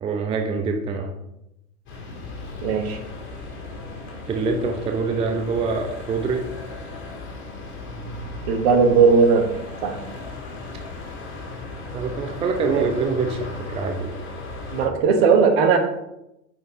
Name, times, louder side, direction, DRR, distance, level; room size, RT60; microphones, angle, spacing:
voice 1, 0.0-1.1 4.3-6.5 11.9-14.1, right 4 dB, 15° right, 5 dB, 0.5 m, -25 dB
sound 1, 1.9-14.9, left 3 dB, 30° left, 2.4 m, -36 dB
voice 2, 2.6-3.0 8.5-9.5 9.8-10.0 12.7-12.9 14.7-15.8, right 5 dB, 45° right, 6 dB, 1.3 m, -17 dB
8.5 x 4.5 x 3.7 m, 0.87 s
figure-of-eight pair, 90°, 41 cm